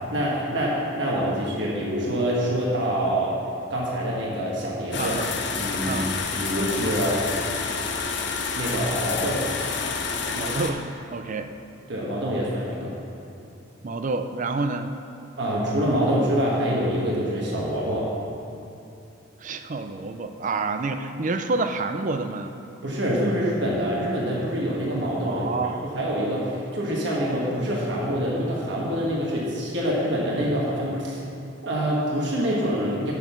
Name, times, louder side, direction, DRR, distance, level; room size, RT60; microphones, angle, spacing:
voice 1, 0.1-3.4 3.7-5.2 5.5-6.0 6.3-7.2 8.5-9.5 11.9-13.0 15.4-18.1 22.8-25.5 25.9-31.2 31.6-33.1, equal, 60° right, -4 dB, 1.3 m, -25 dB
sound 1, 4.9-10.7, left 4 dB, 60° left, 0.7 m, -29 dB
voice 2, 5.0-5.3 5.8-6.1 10.3-11.5 13.8-14.9 19.4-22.6 25.3-25.8, right 3 dB, 40° right, 8 dB, 0.4 m, -28 dB
6.9 x 6.1 x 7.0 m, 2.8 s
head